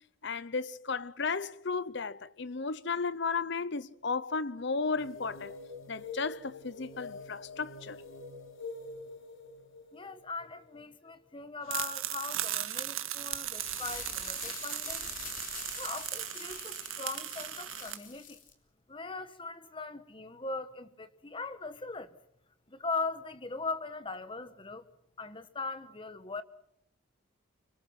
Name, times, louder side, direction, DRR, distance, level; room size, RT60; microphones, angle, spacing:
voice 1, 0.2-5.6 5.9-8.0, left 4 dB, 55° left, 0.8 m, -34 dB
sound 1, 5.0-11.4, left 3 dB, 75° left, 3.1 m, -46 dB
voice 2, 9.9-15.1 15.7-18.4 18.9-22.1 22.7-24.8 25.2-26.4, left 3 dB, 25° left, 1.2 m, -40 dB
sound 2, 11.7-18.0, right 12 dB, 75° right, 1.9 m, -37 dB
sound 3, 13.3-18.5, left 7 dB, 40° left, 3.2 m, -45 dB
25.5 x 24.5 x 6.0 m
head